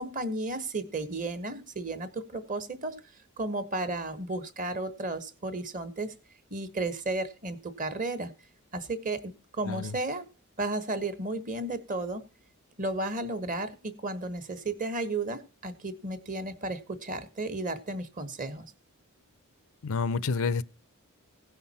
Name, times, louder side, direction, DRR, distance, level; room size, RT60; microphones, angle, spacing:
voice 1, 0.0-3.0 3.4-6.1 6.5-8.3 8.7-10.2 10.6-12.2 12.8-18.7, right 2 dB, 35° right, 1.3 m, -33 dB
voice 2, 19.8-20.6, left 4 dB, 65° left, 0.5 m, -29 dB
17.0 x 5.7 x 4.2 m
head